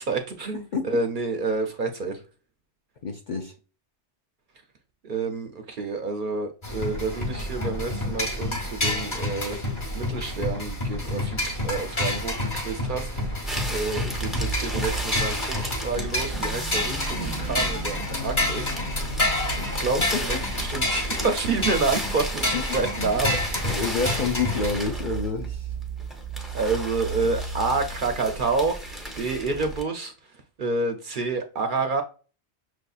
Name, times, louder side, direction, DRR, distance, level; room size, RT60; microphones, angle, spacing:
voice 1, 0.0-2.2 5.0-9.6 9.9-18.8 19.6-23.6 26.5-30.1 30.6-32.0, right 3 dB, 55° right, 0.6 m, -29 dB
voice 2, 3.0-3.5 20.0-20.1 22.5-22.6 23.0-23.4 23.6-25.7, left 5 dB, 60° left, 0.5 m, -28 dB
sound 1, 6.6-24.8, left 1 dB, 30° left, 0.9 m, -29 dB
sound 2, 13.4-29.8, right 2 dB, ahead, 0.6 m, -34 dB
sound 3, 16.3-20.9, left 8 dB, 80° left, 1.2 m, -38 dB
6.1 x 2.6 x 2.3 m
omnidirectional pair, 1.2 m